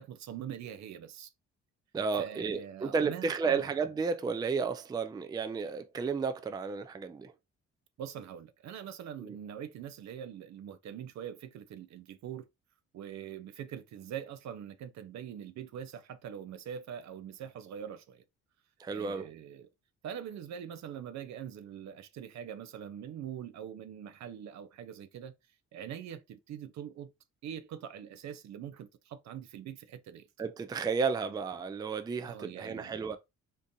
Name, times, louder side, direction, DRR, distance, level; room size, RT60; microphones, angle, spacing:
voice 1, 0.0-1.3 2.1-3.7 8.0-12.5 12.9-18.2 18.9-19.7 20.0-25.3 25.7-27.1 27.4-30.3 32.2-32.9, right 9 dB, 65° right, 0.5 m, -43 dB
voice 2, 1.9-7.3 9.2-9.4 18.8-19.3 30.4-33.2, right 5 dB, 15° right, 0.3 m, -32 dB
3.7 x 2.5 x 2.6 m
cardioid pair, 90°, 30 cm